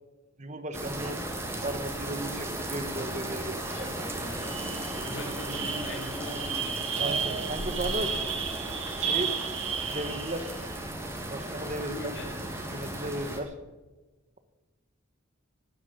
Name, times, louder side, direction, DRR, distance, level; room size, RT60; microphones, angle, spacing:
voice 1, 0.4-1.2 1.6-4.0 7.0-8.1 9.0-9.4 9.9-10.5 11.3-12.2 12.7-13.5, right 1 dB, 35° right, 9 dB, 1.4 m, -35 dB
sound 1, 0.7-13.4, right 1 dB, 10° right, 2.6 m, -36 dB
voice 2, 3.7-8.2 11.9-12.3, left 1 dB, 65° left, 1 dB, 5.1 m, -42 dB
sound 2, 3.7-3.9 4.2-10.6, right 7 dB, 80° right, 6.0 m, -33 dB
18.5 x 9.8 x 6.8 m, 1.2 s
head